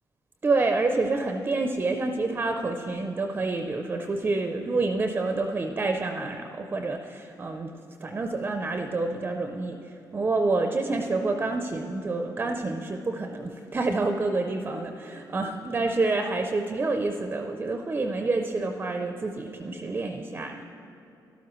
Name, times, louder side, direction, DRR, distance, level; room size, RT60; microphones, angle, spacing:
voice 1, 0.4-7.7 8.0-20.6, right 3 dB, 25° right, 5 dB, 0.4 m, -28 dB
12.5 x 12.0 x 3.0 m, 2.7 s
wide cardioid pair, 150°, 8 cm